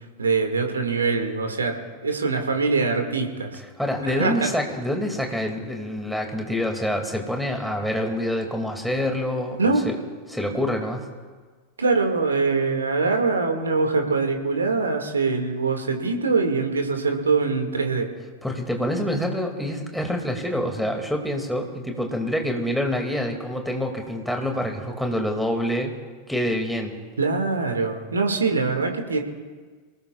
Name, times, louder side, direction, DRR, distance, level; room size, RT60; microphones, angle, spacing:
voice 1, 0.2-3.6 4.1-4.5 9.6-9.9 11.8-18.1 27.2-29.2, right 4 dB, 75° right, 4 dB, 2.2 m, -23 dB
voice 2, 3.8-9.6 9.9-10.0 10.3-11.0 18.4-25.9 26.3-26.9, equal, ahead, 2 dB, 2.5 m, -26 dB
26.5 x 18.5 x 2.5 m, 1.5 s
figure-of-eight pair, 90°, 0 cm